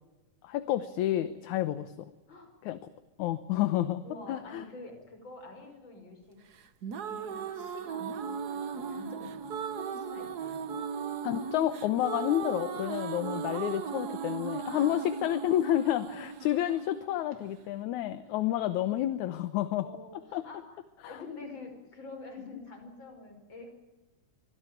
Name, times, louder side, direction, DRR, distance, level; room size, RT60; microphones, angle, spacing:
voice 1, 0.4-2.1 2.6-2.8 3.2-4.0 4.3-4.6 11.2-19.9 20.3-20.4 21.0-21.2, left 13 dB, 75° left, 13 dB, 2.3 m, -30 dB
voice 2, 4.0-6.4 7.0-8.1 8.7-10.7 14.7-15.0 18.3-18.4 19.8-23.7, left 3 dB, 35° left, 4 dB, 6.0 m, -47 dB
sound 1, 6.6-17.6, right 6 dB, 65° right, 0.9 m, -37 dB
25.0 x 17.0 x 9.2 m, 1.1 s
omnidirectional pair, 3.5 m